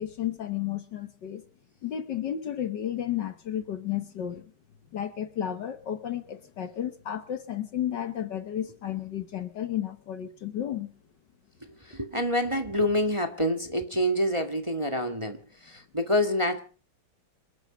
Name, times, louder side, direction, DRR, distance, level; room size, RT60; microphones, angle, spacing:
voice 1, 0.0-1.4 1.8-4.5 4.9-10.9, left 10 dB, 60° left, 1.6 m, -32 dB
voice 2, 11.8-16.6, equal, 15° right, 1.6 m, -27 dB
27.0 x 10.5 x 5.1 m
omnidirectional pair, 2.3 m